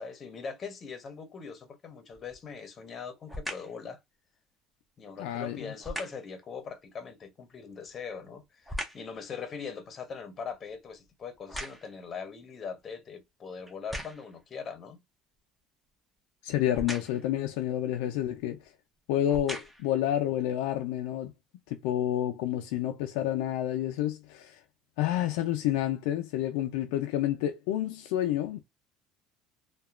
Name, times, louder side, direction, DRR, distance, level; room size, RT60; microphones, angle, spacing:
voice 1, 0.0-4.0 5.0-15.0, left 5 dB, 35° left, 0.8 m, -41 dB
sound 1, 2.1-2.5 3.3-3.8 5.8-6.3 7.7-9.2 9.6-12.1 12.8-12.9 13.7-14.4 16.7-17.3 18.3-18.5 19.1-20.0 20.6-20.7, equal, 5° right, 0.7 m, -40 dB
voice 2, 5.2-5.7 16.4-18.6 19.1-21.3 21.7-24.6 25.0-28.6, left 12 dB, 85° left, 0.3 m, -29 dB
2.8 x 2.2 x 2.3 m
supercardioid pair, 105°, 0 cm